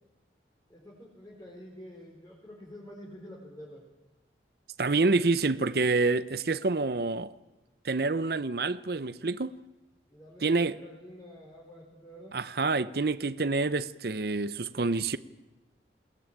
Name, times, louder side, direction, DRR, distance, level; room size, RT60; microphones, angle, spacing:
voice 1, 0.7-3.8 10.1-12.4, equal, 15° left, 4.7 m, -48 dB
voice 2, 4.8-7.3 7.8-9.6 10.4-10.8 12.3-15.2, right 3 dB, 55° right, 0.7 m, -27 dB
21.5 x 19.0 x 9.0 m
head